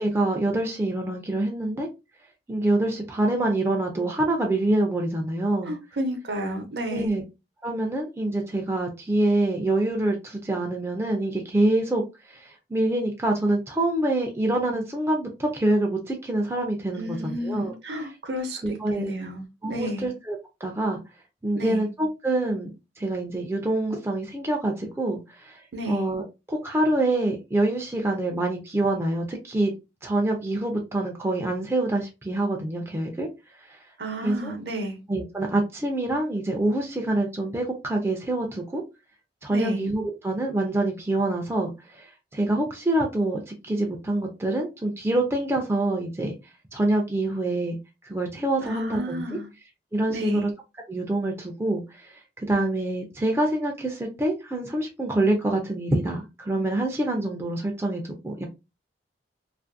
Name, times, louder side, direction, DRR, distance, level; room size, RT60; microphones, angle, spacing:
voice 1, 0.0-1.9 2.5-5.7 6.9-7.2 7.6-12.0 12.3-17.7 18.6-19.1 19.6-21.0 21.4-22.7 23.0-25.6 25.9-29.7 30.0-33.3 33.6-33.8 34.2-34.5 35.1-38.8 39.4-46.3 46.7-47.8 48.0-49.4 49.9-50.5 50.9-58.4, right 1 dB, 15° right, 0.4 m, -26 dB
voice 2, 5.7-7.2 17.0-20.1 21.6-21.8 25.7-26.1 34.0-35.0 39.5-39.9 48.6-49.5 50.1-50.5, equal, 65° right, 0.7 m, -32 dB
2.5 x 2.5 x 2.5 m
head